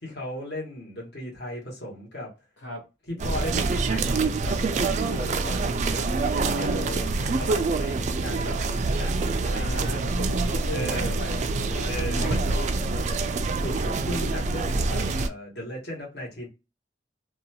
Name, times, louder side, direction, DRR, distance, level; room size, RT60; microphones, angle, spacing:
voice 1, 0.0-2.3 3.1-10.2 10.7-11.1 11.8-12.5 13.6-16.5, left 1 dB, 60° left, 1.2 m, -37 dB
sound 1, 3.2-15.3, right 3 dB, 40° right, 0.3 m, -26 dB
voice 2, 9.4-12.7, left 1 dB, 85° left, 1.0 m, -37 dB
2.7 x 2.3 x 2.8 m
head